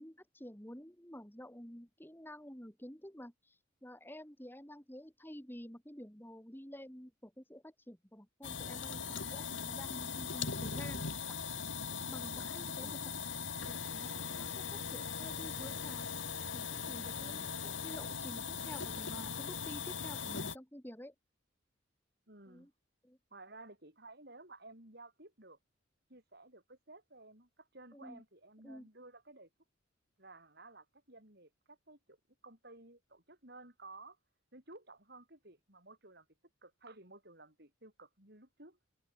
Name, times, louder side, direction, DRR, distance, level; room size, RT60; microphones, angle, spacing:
voice 1, 0.0-11.4 12.1-13.2 13.7-16.1 16.5-21.1 22.5-22.7 23.0-23.2 27.9-28.2 28.6-28.9, equal, 10° left, 2.7 m, -50 dB
sound 1, 8.4-20.6, left 6 dB, 65° left, 4.0 m, -40 dB
voice 2, 12.2-13.1 17.2-17.6 22.3-22.7 23.3-25.6 26.1-29.5 30.2-32.2 32.4-34.2 34.5-36.3 36.6-38.8, right 2 dB, 50° right, 7.9 m, -55 dB
head